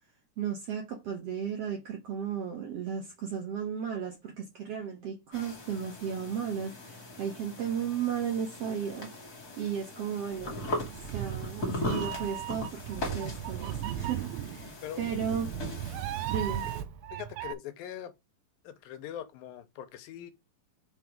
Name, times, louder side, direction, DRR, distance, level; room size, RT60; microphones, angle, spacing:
voice 1, 0.4-15.5 16.3-16.7, right 7 dB, 65° right, 1.5 m, -35 dB
sound 1, 5.3-16.8, left 2 dB, 30° left, 2.2 m, -40 dB
sound 2, 10.3-11.7 12.0-14.9 15.4-17.1, left 2 dB, 30° right, 0.5 m, -57 dB
Meow, 10.8-17.5, right 12 dB, 90° right, 2.5 m, -36 dB
voice 2, 17.1-18.1 18.6-20.3, left 11 dB, 85° left, 2.6 m, -42 dB
5.7 x 4.6 x 5.2 m
omnidirectional pair, 4.1 m